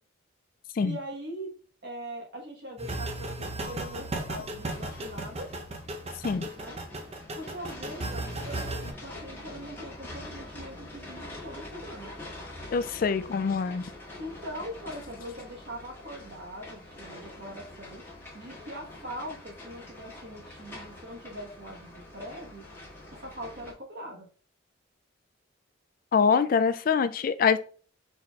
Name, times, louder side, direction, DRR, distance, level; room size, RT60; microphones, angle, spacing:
voice 1, 0.8-1.5 1.8-5.5 6.5-6.8 7.3-12.1 14.2-18.0 18.3-22.6 23.1-24.3, equal, 55° right, 0 dB, 1.2 m, -41 dB
sound 1, 2.8-8.9, right 2 dB, 30° right, 0.6 m, -36 dB
sound 2, 4.6-23.7, left 1 dB, 10° left, 1.5 m, -45 dB
voice 2, 12.7-13.9 26.1-27.6, left 6 dB, 45° left, 12 dB, 0.3 m, -24 dB
4.4 x 4.1 x 2.3 m, 0.39 s
head